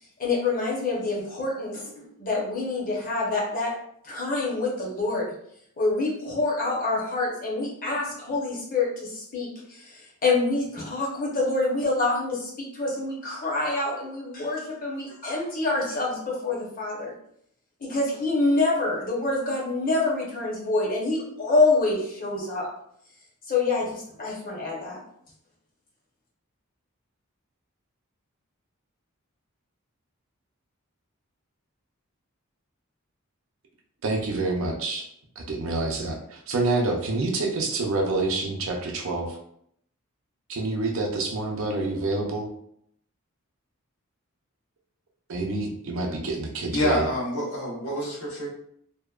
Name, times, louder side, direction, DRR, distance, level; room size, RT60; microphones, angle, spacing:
voice 1, 0.2-3.7 4.0-5.3 5.8-17.1 17.8-22.7 23.5-25.0, left 3 dB, 40° left, -4 dB, 0.8 m, -26 dB
voice 2, 34.0-35.1 35.4-39.4 40.5-42.5 45.3-47.1, right 2 dB, 70° right, 1 dB, 0.5 m, -27 dB
voice 3, 46.7-48.5, left 1 dB, 90° left, -4 dB, 0.9 m, -27 dB
2.8 x 2.1 x 2.3 m, 0.68 s
head